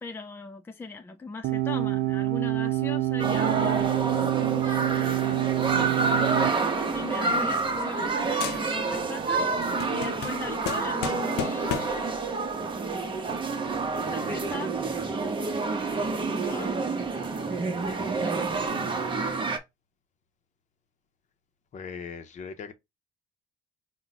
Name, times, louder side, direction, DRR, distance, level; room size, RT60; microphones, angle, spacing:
voice 1, 0.0-3.8 4.3-5.4 5.7-6.5 6.9-12.1 14.1-14.7 16.3-16.8 18.0-18.4, left 4 dB, 15° left, 0.5 m, -39 dB
sound 1, 1.4-6.5, right 17 dB, 70° right, 0.5 m, -26 dB
sound 2, 3.2-19.6, right 4 dB, 30° right, 0.8 m, -28 dB
sound 3, 6.8-8.1 8.4-9.1 9.4-12.1, left 11 dB, 80° left, 0.5 m, -36 dB
voice 2, 21.7-22.7, left 6 dB, 45° left, 0.7 m, -39 dB
4.6 x 2.2 x 4.0 m
cardioid pair, 110°, 17 cm